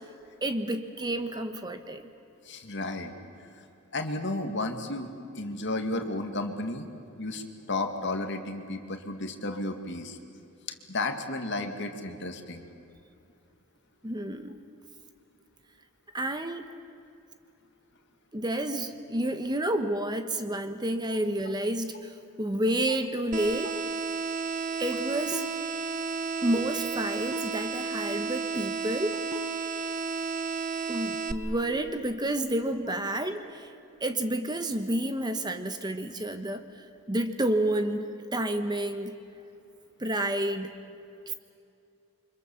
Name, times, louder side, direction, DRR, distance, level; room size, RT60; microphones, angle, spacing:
voice 1, 0.4-2.0 14.0-14.6 16.1-16.7 18.3-22.1 22.4-23.7 24.8-25.4 26.4-29.2 30.9-33.7 34.0-36.6 37.1-38.0 38.3-39.1 40.0-40.7 41.3-41.4, right 1 dB, 20° right, 8 dB, 1.1 m, -30 dB
voice 2, 2.4-3.1 3.5-3.6 3.9-6.9 7.2-10.2 10.9-12.7 21.1-21.2, left 2 dB, 55° left, 6 dB, 2.1 m, -33 dB
sound 1, 23.3-31.3, right 5 dB, 35° right, 1.1 m, -32 dB
29.0 x 25.0 x 7.1 m, 2.7 s
head